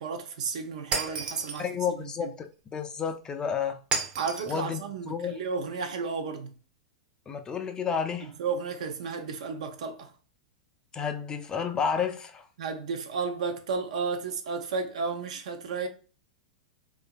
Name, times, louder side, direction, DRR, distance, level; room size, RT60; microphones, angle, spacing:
voice 1, 0.0-1.7 2.0-2.3 4.2-6.5 8.2-10.1 12.6-15.9, right 5 dB, 70° right, 0.6 m, -33 dB
Shatter, 0.9-1.7 3.9-4.6, right 4 dB, 25° right, 0.6 m, -31 dB
voice 2, 1.6-3.8 4.5-5.4 7.3-8.3 10.9-12.5, left 7 dB, 20° left, 0.4 m, -31 dB
2.8 x 2.4 x 2.2 m
hypercardioid pair, 115°, 4 cm